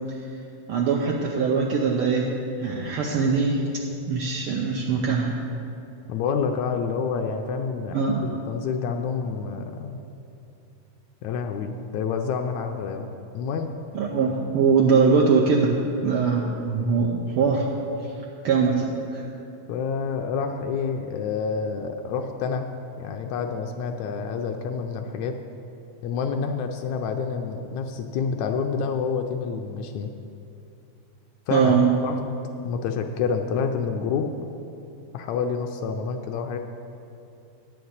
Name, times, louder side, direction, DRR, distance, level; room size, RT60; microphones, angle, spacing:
voice 1, 0.7-2.3 2.6-3.6 4.1-5.3 7.9-8.3 13.9-17.7 18.4-18.9 19.1-19.3 31.5-31.9, right 5 dB, 80° right, -2 dB, 1.2 m, -22 dB
voice 2, 6.1-10.0 11.2-13.1 13.3-13.7 19.7-22.7 23.0-25.4 26.0-30.1 31.5-31.7 32.0-32.2 32.6-34.3 35.1-36.6, left 5 dB, 80° left, 4 dB, 1.8 m, -28 dB
9.9 x 5.8 x 7.9 m, 2.7 s
omnidirectional pair, 3.3 m